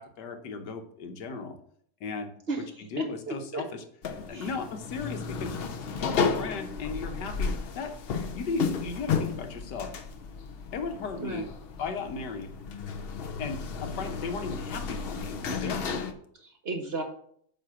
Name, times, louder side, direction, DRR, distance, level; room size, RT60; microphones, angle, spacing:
voice 1, 0.0-1.6 2.0-2.3 2.9-3.8 4.2-5.6 6.0-8.0 8.3-9.9 10.7-11.5 11.8-12.5 13.4-16.2, left 4 dB, 90° left, 6 dB, 1.5 m, -36 dB
voice 2, 3.0-3.6 4.3-4.5 11.2-11.5 16.4-17.0, right 3 dB, 45° right, 5 dB, 1.0 m, -34 dB
sound 1, 4.0-16.1, left 5 dB, 65° left, 0.5 m, -33 dB
9.2 x 3.3 x 5.9 m, 0.64 s
omnidirectional pair, 1.8 m